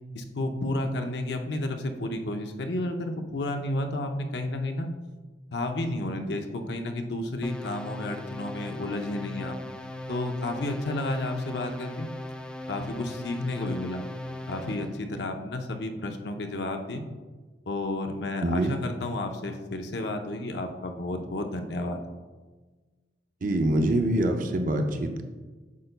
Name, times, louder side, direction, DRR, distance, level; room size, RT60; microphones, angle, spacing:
voice 1, 0.1-4.9 5.5-9.6 10.1-12.1 12.7-14.1 14.5-17.0 17.7-22.0, left 2 dB, 70° left, 5 dB, 0.7 m, -31 dB
sound 1, 7.4-15.0, left 1 dB, 5° left, 0.4 m, -38 dB
voice 2, 18.4-18.7 23.4-25.2, right 1 dB, 50° right, 5 dB, 0.6 m, -25 dB
8.4 x 6.6 x 2.2 m, 1.3 s
head